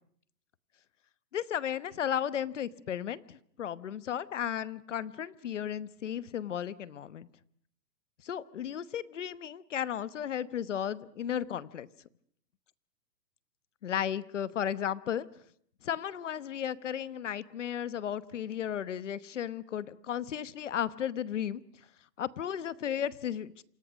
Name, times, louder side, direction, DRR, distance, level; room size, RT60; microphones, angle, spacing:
voice 1, 1.3-7.3 8.2-11.9 13.8-15.3 15.8-21.6 22.2-23.6, left 9 dB, 45° left, 16 dB, 1.1 m, -34 dB
29.0 x 27.0 x 6.3 m, 0.64 s
hypercardioid pair, 180°, 49 cm